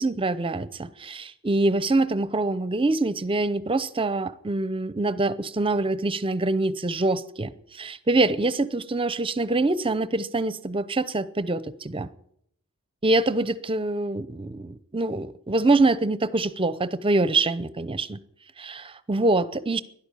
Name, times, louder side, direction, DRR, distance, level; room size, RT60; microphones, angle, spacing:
voice 1, 0.0-12.1 13.0-18.2 18.6-19.8, right 2 dB, 25° right, 0.7 m, -25 dB
12.0 x 11.0 x 8.5 m
head